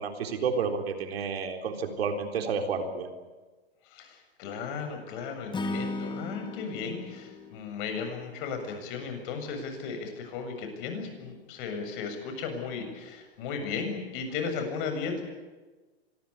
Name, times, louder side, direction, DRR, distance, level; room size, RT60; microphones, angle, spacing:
voice 1, 0.0-3.1, right 5 dB, 75° right, 6 dB, 4.0 m, -30 dB
voice 2, 3.9-15.2, left 5 dB, 50° left, 6 dB, 7.4 m, -35 dB
Acoustic guitar / Strum, 5.5-8.8, left 2 dB, 15° left, 2.6 m, -37 dB
26.0 x 20.5 x 8.4 m, 1.2 s
hypercardioid pair, 115°, 32 cm